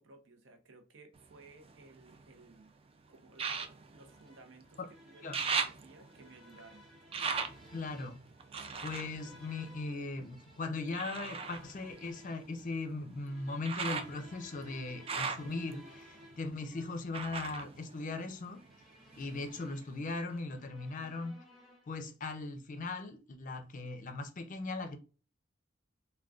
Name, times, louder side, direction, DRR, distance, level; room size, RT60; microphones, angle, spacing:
voice 1, 0.0-2.7 3.1-6.9, right 3 dB, 70° right, 0.7 m, -57 dB
sound 1, 1.2-2.5 3.3-4.8 5.1-10.3 10.9-18.8 19.1-19.9 20.4-20.5, right 5 dB, 30° right, 0.3 m, -40 dB
sound 2, 4.1-22.1, left 1 dB, ahead, 0.8 m, -59 dB
voice 2, 7.7-8.2 8.8-18.6 19.2-21.4 21.9-25.0, left 3 dB, 40° left, 0.5 m, -39 dB
3.6 x 2.2 x 2.3 m
head